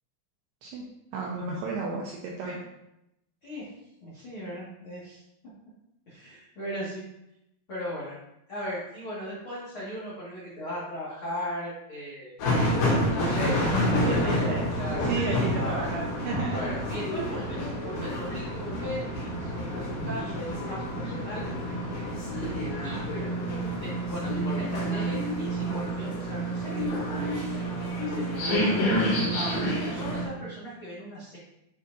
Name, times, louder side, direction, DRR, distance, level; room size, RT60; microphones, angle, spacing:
voice 1, 1.1-2.6 13.6-14.7 15.1-16.9, right 4 dB, 85° right, -2 dB, 2.4 m, -33 dB
voice 2, 4.0-5.2 6.1-7.0 7.7-8.2 8.5-12.4 13.0-14.5 14.8-15.9 16.5-21.4 22.8-23.0 23.8-29.5 29.9-31.4, equal, 80° left, -9 dB, 1.1 m, -38 dB
sound 1, 12.4-30.3, equal, 60° left, 3.8 m, -28 dB
9.3 x 5.5 x 2.6 m, 0.86 s
omnidirectional pair, 5.5 m